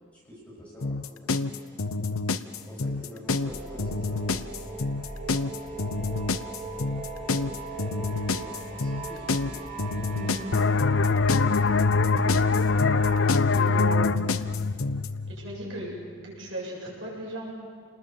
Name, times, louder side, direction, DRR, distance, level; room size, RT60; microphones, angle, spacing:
voice 1, 0.1-1.3 2.5-4.5 8.3-9.6, equal, 5° left, -5 dB, 7.1 m, -46 dB
sound 1, 0.8-15.1, left 3 dB, 75° left, 0.9 m, -29 dB
sound 2, 3.3-13.3, right 3 dB, 30° right, 3.8 m, -39 dB
voice 2, 10.1-10.5 13.5-14.5 15.3-15.9 16.2-17.5, right 1 dB, 60° right, -3 dB, 7.7 m, -36 dB
sound 3, 10.5-15.9, left 4 dB, 55° left, 0.6 m, -24 dB
28.5 x 20.0 x 7.7 m, 2.1 s
head